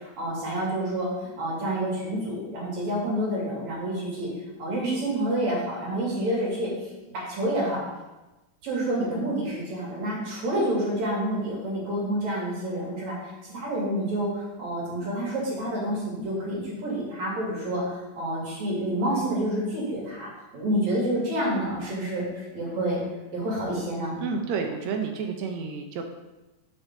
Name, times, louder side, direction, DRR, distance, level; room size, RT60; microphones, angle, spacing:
voice 1, 0.2-1.1 1.4-4.3 4.6-6.9 7.1-7.8 8.6-23.0 23.3-24.2, right 1 dB, 55° right, -5 dB, 3.9 m, -28 dB
voice 2, 24.2-26.0, right 5 dB, 75° right, 4 dB, 1.7 m, -30 dB
7.3 x 5.0 x 6.6 m, 1.1 s
omnidirectional pair, 3.9 m